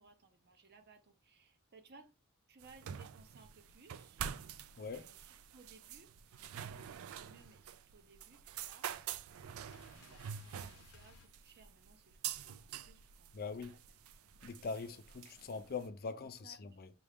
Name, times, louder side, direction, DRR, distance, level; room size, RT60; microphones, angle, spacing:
voice 1, 0.0-2.2 2.5-4.2 4.9-6.1 6.4-13.8 14.6-14.8 16.4-16.9, right 3 dB, 50° right, 0.7 m, -63 dB
sound 1, 2.6-15.9, right 9 dB, 70° right, 0.4 m, -47 dB
sound 2, 9.7-12.2 13.6-14.9, left 5 dB, 85° left, 0.7 m, -64 dB
voice 2, 13.3-13.7 14.4-16.9, left 4 dB, 45° left, 0.5 m, -42 dB
6.0 x 2.4 x 3.5 m
head